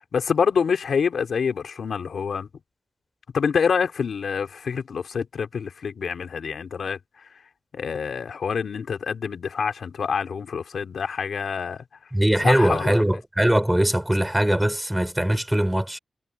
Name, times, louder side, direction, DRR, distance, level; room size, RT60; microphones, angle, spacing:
voice 1, 0.1-2.5 3.3-7.3 7.7-11.8 12.4-13.0, left 6 dB, 65° left, 3.7 m, -26 dB
voice 2, 12.1-16.0, right 1 dB, 5° right, 4.5 m, -21 dB
wide cardioid pair, 175°, 0 cm